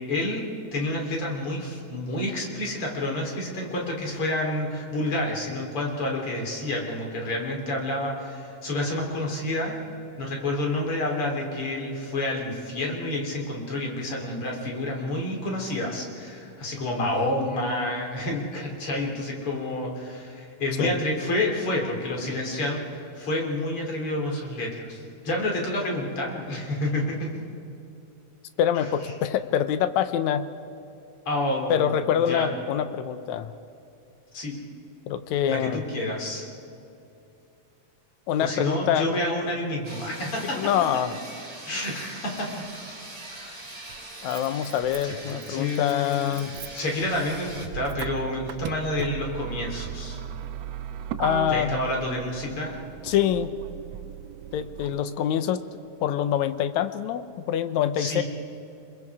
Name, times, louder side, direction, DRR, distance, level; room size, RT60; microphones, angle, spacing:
voice 1, 0.1-0.4 0.7-9.8 10.2-27.4 28.7-28.9 31.3-31.9 32.2-32.5 34.3-34.6 35.5-36.5 38.4-40.7 41.6-42.7 43.3-43.5 45.0-46.4 46.7-50.2 51.5-52.7 58.0-58.2, left 1 dB, 45° left, 0 dB, 3.9 m, -29 dB
voice 2, 28.6-30.4 31.7-33.5 35.1-35.8 38.3-39.1 40.5-41.1 44.2-46.6 51.2-51.8 53.0-53.6 54.5-55.7 56.0-58.2, left 9 dB, 70° left, 11 dB, 2.0 m, -25 dB
sound 1, 39.8-47.7, right 2 dB, 15° right, 1.9 m, -42 dB
Motor vehicle (road), 42.6-42.7 43.9-55.0, right 10 dB, 75° right, 1.5 m, -37 dB
29.5 x 21.5 x 4.9 m, 2.7 s
omnidirectional pair, 3.6 m